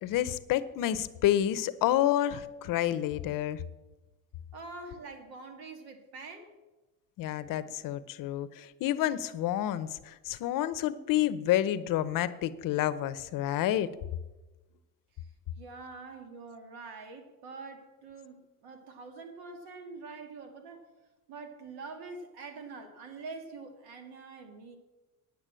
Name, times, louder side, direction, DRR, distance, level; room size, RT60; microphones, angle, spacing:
voice 1, 0.0-3.6 7.2-13.9, left 12 dB, 55° left, 15 dB, 0.8 m, -29 dB
voice 2, 4.5-6.5 15.2-15.3 15.6-20.9 21.3-24.8, right 3 dB, 70° right, 5 dB, 2.3 m, -45 dB
9.7 x 8.3 x 7.5 m, 1.1 s
cardioid pair, 125°, 39 cm